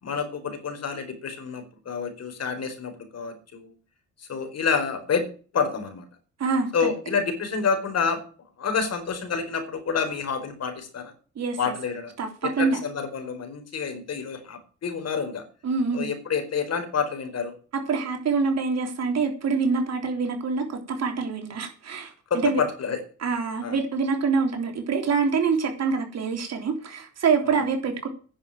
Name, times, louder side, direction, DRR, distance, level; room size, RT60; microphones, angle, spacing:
voice 1, 0.0-3.7 4.2-5.2 5.5-6.1 6.7-8.2 8.6-11.1 11.6-12.1 12.4-15.4 15.9-17.5 22.3-23.0 23.6-23.7, left 5 dB, 55° left, 4.5 m, -28 dB
voice 2, 6.4-6.9 11.4-11.7 12.2-12.8 15.6-16.1 17.7-22.1 22.4-22.6 23.2-28.1, right 5 dB, 60° right, 3.6 m, -25 dB
10.0 x 7.3 x 8.9 m
cardioid pair, 90°, 30 cm